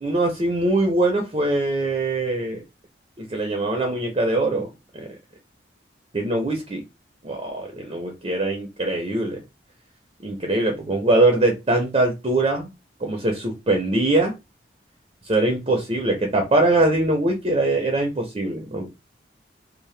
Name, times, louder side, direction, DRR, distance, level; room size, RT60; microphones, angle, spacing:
voice 1, 0.0-2.6 3.2-4.7 4.9-5.0 6.1-6.8 7.2-9.4 10.2-12.7 13.0-14.3 15.3-18.9, right 2 dB, 30° right, 2 dB, 0.5 m, -22 dB
2.7 x 2.1 x 3.1 m, 0.24 s
head